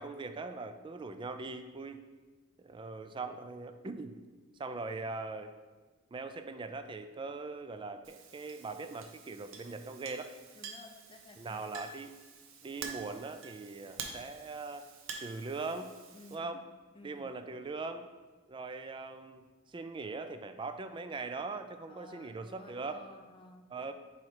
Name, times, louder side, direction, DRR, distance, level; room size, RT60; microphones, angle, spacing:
voice 1, 0.0-2.0 2.6-4.2 4.6-5.5 6.1-10.3 11.4-12.1 12.6-14.9 15.2-15.9 16.3-16.7 17.0-18.1 18.5-23.0 23.7-23.9, right 3 dB, 25° right, 9 dB, 0.3 m, -41 dB
Chink clink, 8.0-16.4, right 5 dB, 65° right, 0.7 m, -48 dB
voice 2, 10.5-11.6 16.1-16.5 16.9-17.3 21.9-23.7, left 2 dB, 25° left, 2 dB, 0.6 m, -54 dB
7.3 x 3.1 x 4.8 m, 1.3 s
head